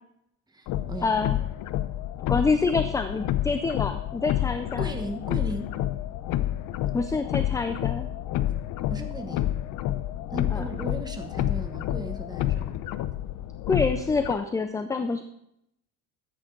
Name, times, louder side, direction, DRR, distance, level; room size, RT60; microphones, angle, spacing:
voice 1, 0.5-1.1 4.8-5.7 8.9-9.4 10.3-12.7, right 2 dB, 10° right, 5 dB, 1.2 m, -36 dB
sound 1, 0.7-14.3, left 13 dB, 65° left, 0.7 m, -29 dB
voice 2, 1.0-1.4 2.3-4.9 6.9-8.1 10.5-10.6 13.7-15.2, left 4 dB, 10° left, 8 dB, 0.4 m, -26 dB
13.5 x 8.7 x 3.8 m, 0.79 s
cardioid pair, 135°, 34 cm